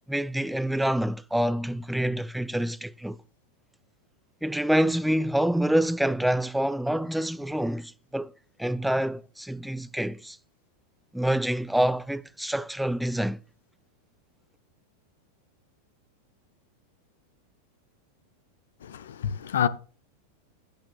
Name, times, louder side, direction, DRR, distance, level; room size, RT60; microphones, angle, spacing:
voice 1, 0.1-3.2 4.4-8.3 8.6-10.4 11.1-13.4, right 1 dB, ahead, 0.4 m, -26 dB
voice 2, 18.8-19.7, left 9 dB, 60° left, 0.7 m, -27 dB
15.0 x 8.7 x 2.3 m
figure-of-eight pair, 90°, 0 cm